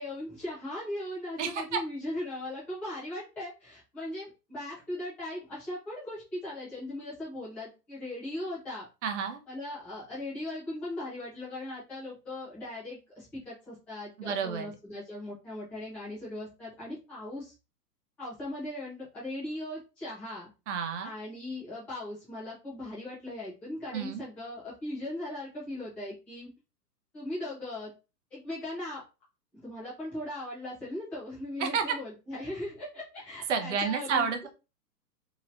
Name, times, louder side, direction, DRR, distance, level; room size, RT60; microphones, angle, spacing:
voice 1, 0.0-8.9 9.5-17.5 18.2-20.5 21.0-26.5 27.1-27.9 28.3-29.0 29.6-34.3, left 1 dB, 5° left, -10 dB, 0.4 m, -38 dB
voice 2, 1.4-1.8 9.0-9.4 14.2-14.7 20.7-21.1 23.9-24.2 31.6-31.9 33.5-34.5, right 6 dB, 45° right, 6 dB, 0.7 m, -30 dB
2.9 x 2.9 x 2.5 m, 0.30 s
figure-of-eight pair, 110°, 49 cm